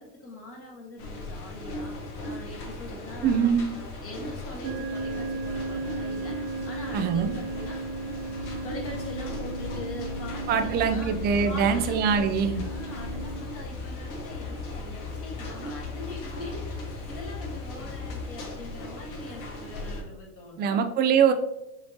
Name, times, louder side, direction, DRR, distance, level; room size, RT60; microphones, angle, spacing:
voice 1, 0.0-7.9 8.6-11.2 11.4-20.8, left 2 dB, 30° left, -1 dB, 1.6 m, -42 dB
sound 1, 1.0-20.0, left 2 dB, 55° left, 1.5 m, -39 dB
voice 2, 3.2-3.8 6.9-7.3 10.5-12.6 20.6-21.3, right 7 dB, 25° right, 7 dB, 0.3 m, -23 dB
sound 2, 4.6-13.4, right 3 dB, 70° right, 0.8 m, -36 dB
sound 3, 8.3-18.3, left 4 dB, 80° left, 1.4 m, -39 dB
6.4 x 2.9 x 2.8 m, 0.90 s
hypercardioid pair, 100°, 46 cm